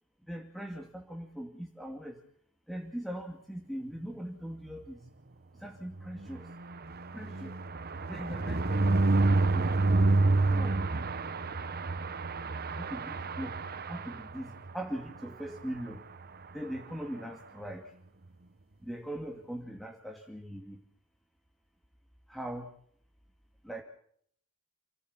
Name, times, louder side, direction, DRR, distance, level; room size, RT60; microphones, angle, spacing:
voice 1, 0.3-2.2 2.7-5.0 5.5-6.5 7.1-7.6 8.1-9.1 9.3-10.1 10.4-10.9 12.7-13.6 13.9-16.0 16.5-17.9 18.8-20.8 22.3-22.7 23.6-23.8, equal, ahead, 3 dB, 2.4 m, -41 dB
sound 1, 5.9-14.7 15.2-15.3 15.6-15.7 15.9-16.2, right 2 dB, 45° right, 1.3 m, -29 dB
29.5 x 16.5 x 7.4 m, 0.65 s
head